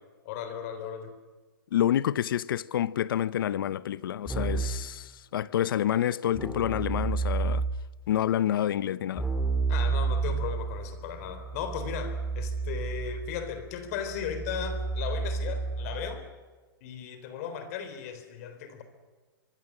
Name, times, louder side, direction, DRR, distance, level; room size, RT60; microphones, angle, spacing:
voice 1, 0.3-1.1 9.7-16.2 16.8-18.8, left 8 dB, 40° left, 3.7 m, -36 dB
voice 2, 1.7-7.6 8.1-9.3, left 11 dB, 65° left, 0.8 m, -28 dB
Keyboard (musical), 4.3-4.9 6.3-7.9 9.2-16.2, right 4 dB, ahead, 2.4 m, -31 dB
24.5 x 23.0 x 7.5 m
hypercardioid pair, 160°, 12 cm